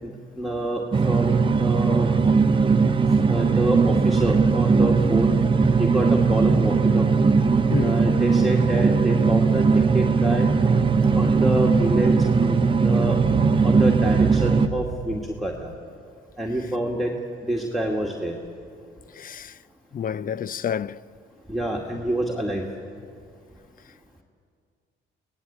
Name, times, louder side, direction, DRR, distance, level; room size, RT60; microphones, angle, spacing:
voice 1, 0.0-2.1 3.3-5.3 5.8-7.3 7.8-10.5 11.1-13.2 13.6-15.7 16.4-17.1 17.5-18.3 21.5-22.6, right 1 dB, ahead, 2.1 m, -27 dB
sound 1, 0.9-14.7, right 4 dB, 25° right, 0.8 m, -19 dB
sound 2, 4.8-15.7, right 8 dB, 80° right, 1.2 m, -35 dB
voice 2, 19.2-19.5 19.9-21.0, left 8 dB, 45° left, 0.6 m, -29 dB
23.5 x 18.5 x 8.4 m
cardioid pair, 90°, 20 cm